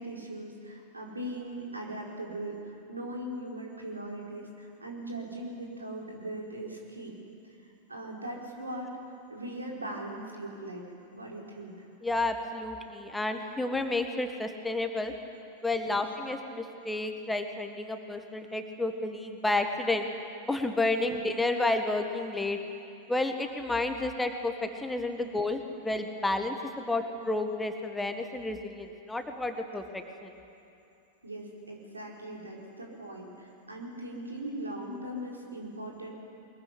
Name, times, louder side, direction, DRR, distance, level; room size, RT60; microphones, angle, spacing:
voice 1, 0.0-2.6 2.9-7.1 7.9-8.9 9.3-11.9 15.8-16.1 21.0-21.1 31.2-36.1, right 1 dB, 80° right, -2 dB, 4.9 m, -40 dB
voice 2, 12.0-15.1 15.6-20.1 20.5-22.6 23.1-30.3, left 2 dB, 5° left, 6 dB, 1.8 m, -31 dB
23.0 x 22.0 x 9.9 m, 2.8 s
figure-of-eight pair, 90°, 0 cm